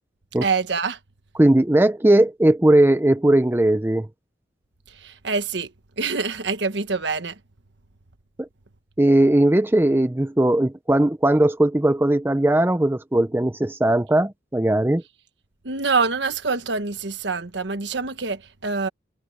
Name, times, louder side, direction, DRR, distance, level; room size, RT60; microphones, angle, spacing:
voice 1, 0.4-1.0 4.9-5.7 6.0-7.4 15.6-18.9, right 4 dB, 70° right, 1.4 m, -25 dB
voice 2, 1.4-4.1 8.4-8.5 9.0-15.0, right 1 dB, 10° right, 0.5 m, -18 dB
head